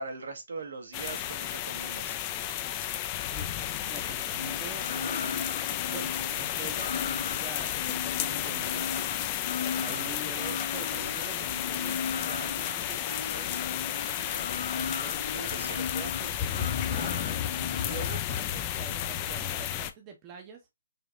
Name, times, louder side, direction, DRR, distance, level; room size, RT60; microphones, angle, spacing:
voice 1, 0.0-2.2 9.0-9.3 14.2-14.4 15.2-15.8, right 3 dB, 70° right, 1.4 m, -41 dB
sound 1, 0.9-19.9, left 11 dB, 20° left, 0.3 m, -32 dB
voice 2, 3.9-5.5 5.9-8.9 9.7-13.5 14.8-17.2 17.7-20.6, right 4 dB, 15° right, 0.7 m, -45 dB
sound 2, 4.4-18.2, left 5 dB, 70° left, 1.0 m, -37 dB
4.9 x 2.8 x 2.5 m
hypercardioid pair, 170°, 0 cm